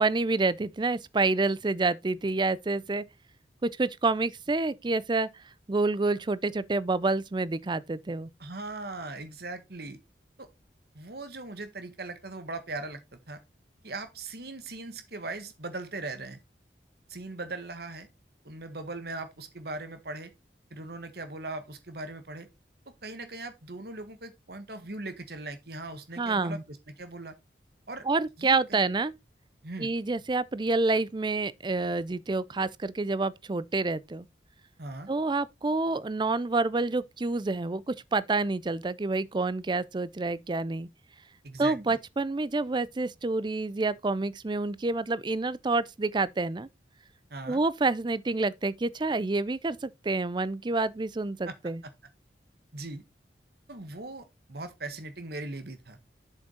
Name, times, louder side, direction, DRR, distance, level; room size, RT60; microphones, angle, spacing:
voice 1, 0.0-3.0 3.6-5.3 5.7-8.3 26.2-26.6 28.0-29.1 29.8-34.3 35.1-40.9 41.6-46.7 47.5-51.8, right 3 dB, 25° right, 0.4 m, -28 dB
voice 2, 8.4-10.0 10.4-10.5 11.0-13.4 13.8-16.4 17.1-18.1 18.5-20.3 20.7-22.5 23.0-27.4 27.9-28.1 28.4-28.8 29.6-29.9 34.8-35.1 41.4-42.0 47.3-47.6 51.5-51.6 51.8-51.9 52.7-53.0 53.7-56.0, right 2 dB, 60° right, 1.8 m, -39 dB
7.4 x 6.3 x 4.2 m
head